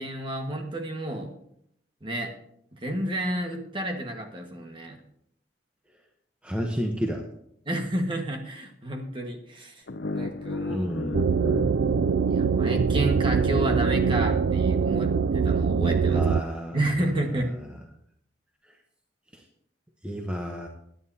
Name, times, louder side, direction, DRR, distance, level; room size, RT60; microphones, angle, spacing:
voice 1, 0.0-1.3 2.0-2.3 2.7-5.0 7.6-9.8 10.1-10.9 12.3-16.2 16.7-17.5, right 1 dB, 30° right, 3 dB, 1.5 m, -30 dB
voice 2, 6.4-7.2 10.7-11.4 16.1-16.9 19.3-19.4 20.0-20.7, equal, 5° right, 1 dB, 0.9 m, -31 dB
sound 1, 9.9-12.9, left 2 dB, 70° left, 0.7 m, -35 dB
sound 2, 11.1-16.4, right 5 dB, 90° right, 0.4 m, -23 dB
17.0 x 11.0 x 2.8 m, 0.71 s
head